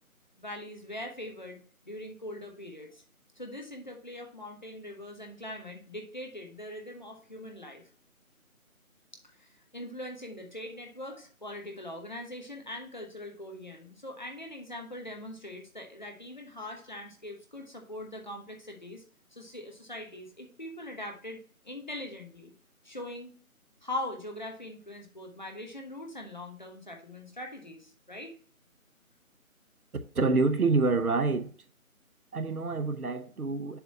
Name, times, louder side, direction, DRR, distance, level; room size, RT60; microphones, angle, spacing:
voice 1, 0.4-1.6 1.9-3.0 3.4-7.9 9.2-19.0 19.3-21.4 21.6-22.5 22.8-23.3 23.8-28.3, left 1 dB, 35° left, 0.9 m, -41 dB
voice 2, 30.1-31.5 32.3-33.8, right 3 dB, 90° right, 0.9 m, -27 dB
6.9 x 2.8 x 5.5 m
figure-of-eight pair, 165°, 43 cm